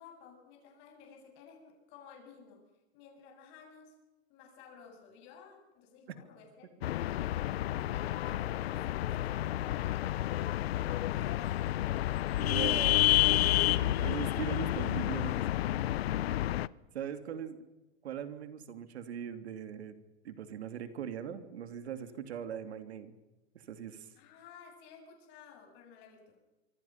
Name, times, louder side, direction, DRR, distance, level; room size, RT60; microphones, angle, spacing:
voice 1, 0.0-2.6 2.9-4.0 4.3-10.2 10.6-11.6 21.9-22.1 24.2-26.4, left 6 dB, 35° left, 3 dB, 7.6 m, -54 dB
sound 1, 6.8-16.7, left 14 dB, 65° left, 0.7 m, -30 dB
voice 2, 12.4-15.4 16.9-17.6 18.0-19.9 20.2-23.1 23.5-24.1, right 9 dB, 75° right, 9 dB, 2.9 m, -40 dB
26.0 x 25.0 x 5.9 m, 1.0 s
hypercardioid pair, 160°, 33 cm